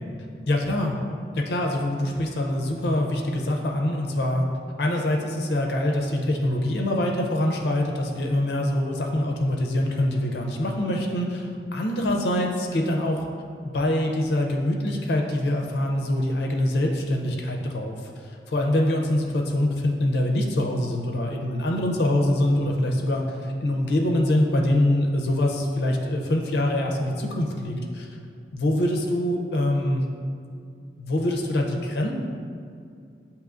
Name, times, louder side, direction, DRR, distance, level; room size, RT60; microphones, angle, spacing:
voice 1, 0.5-1.0 1.3-4.4 4.8-13.3 13.6-17.9 18.5-28.1 28.5-30.0 31.0-32.1, left 1 dB, 70° left, 1 dB, 0.5 m, -24 dB
7.8 x 2.8 x 2.4 m, 2.4 s
head